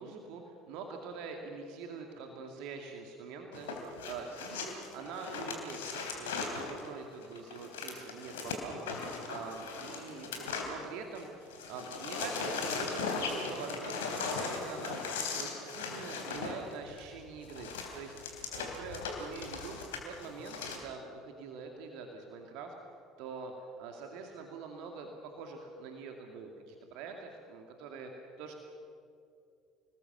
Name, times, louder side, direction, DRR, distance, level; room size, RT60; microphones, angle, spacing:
voice 1, 0.0-22.7 23.2-28.1 28.4-28.5, right 5 dB, 65° right, 3 dB, 2.3 m, -45 dB
sound 1, 3.5-11.2 11.5-20.8, left 4 dB, 75° left, 3.3 m, -38 dB
28.5 x 20.0 x 6.8 m, 2.5 s
figure-of-eight pair, 60°, 0 cm